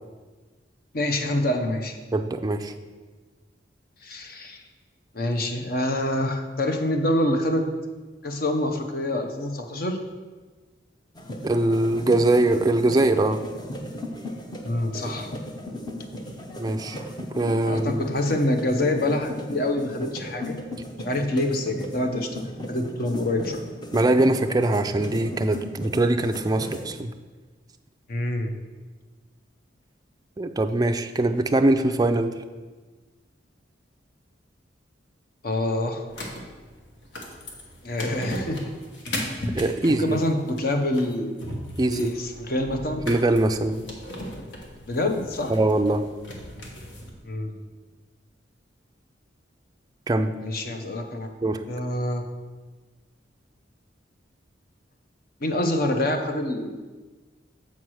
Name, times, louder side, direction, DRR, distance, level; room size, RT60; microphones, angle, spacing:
voice 1, 0.9-2.0 4.0-4.6 5.1-7.7 8.2-10.0 14.6-15.3 17.6-20.6 21.0-23.6 28.1-28.5 35.4-36.0 37.8-38.7 40.0-41.3 41.9-43.0 44.9-45.5 47.2-47.5 50.4-51.3 51.7-52.2 55.4-56.9, left 1 dB, 50° left, 5 dB, 0.8 m, -26 dB
voice 2, 2.1-2.7 11.4-13.4 16.6-17.0 17.3-18.0 23.9-27.1 30.4-32.4 39.5-40.2 41.8-42.1 43.1-43.8 45.5-46.0 50.1-50.3 51.4-51.6, right 2 dB, 20° right, 6 dB, 0.4 m, -22 dB
sound 1, 11.2-26.9, left 1 dB, 25° left, 0.7 m, -37 dB
sound 2, 36.1-47.1, left 1 dB, 80° left, 1.4 m, -37 dB
7.3 x 4.7 x 6.2 m, 1.3 s
head